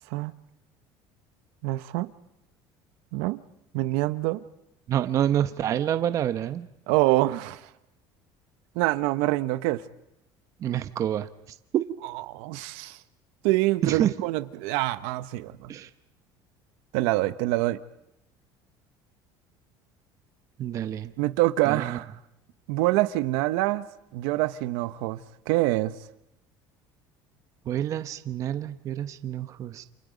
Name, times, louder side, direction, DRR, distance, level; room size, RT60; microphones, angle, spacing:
voice 1, 1.6-2.1 3.1-3.4 3.7-4.4 6.9-7.6 8.7-9.8 12.3-13.0 13.4-15.7 16.9-17.8 21.2-22.1 22.7-23.8 24.1-25.2 25.5-25.9, right 18 dB, 85° right, 1.1 m, -25 dB
voice 2, 4.9-6.7 10.6-11.3 11.7-11.8 13.8-14.1 15.7-15.9 20.6-21.1 21.6-22.0 27.6-29.8, right 10 dB, 35° right, 1.0 m, -27 dB
29.0 x 28.0 x 5.2 m
cardioid pair, 175°, 10 cm